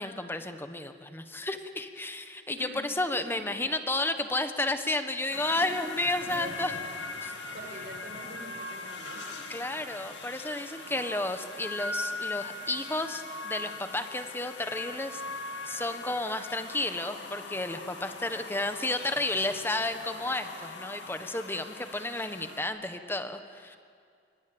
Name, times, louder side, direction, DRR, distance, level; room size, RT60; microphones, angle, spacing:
voice 1, 0.0-6.7 7.2-7.4 9.5-15.2 15.7-23.8, left 2 dB, 15° left, 8 dB, 1.4 m, -32 dB
sound 1, 5.3-22.6, left 3 dB, 80° left, 2.5 m, -40 dB
voice 2, 6.2-6.8 7.2-9.5, equal, 70° right, 2 dB, 5.9 m, -45 dB
25.5 x 24.0 x 9.0 m, 2.3 s
head